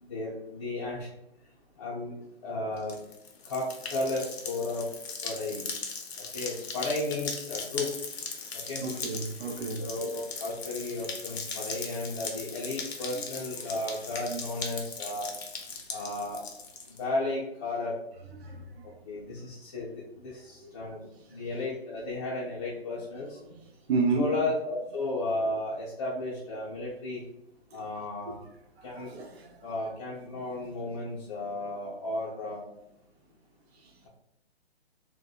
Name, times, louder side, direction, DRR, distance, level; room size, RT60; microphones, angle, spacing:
voice 1, 0.0-1.1 1.8-2.1 2.4-3.0 3.4-4.9 5.2-5.7 6.3-8.1 8.5-8.8 9.8-15.3 15.9-16.4 16.9-18.0 19.0-21.0 21.3-23.4 24.2-27.2 27.7-28.4 28.8-29.1 29.6-32.7, left 2 dB, 30° left, 0.4 m, -34 dB
sound 1, 2.8-17.0, left 4 dB, 75° left, 0.6 m, -39 dB
voice 2, 8.8-9.8 14.3-14.4 18.4-18.6 20.6-20.7 23.9-24.3 29.0-29.6, right 3 dB, 75° right, 0.6 m, -30 dB
2.7 x 2.1 x 2.3 m
hypercardioid pair, 140°, 32 cm